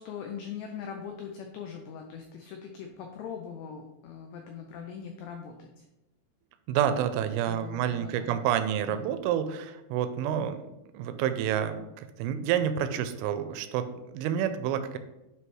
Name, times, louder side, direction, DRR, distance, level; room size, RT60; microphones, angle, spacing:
voice 1, 0.0-5.9 7.4-8.4 8.9-9.1, left 7 dB, 90° left, 3 dB, 2.4 m, -41 dB
voice 2, 6.7-10.7 10.9-15.0, right 9 dB, 85° right, 10 dB, 2.9 m, -29 dB
9.3 x 3.3 x 4.6 m, 0.96 s
omnidirectional pair, 5.8 m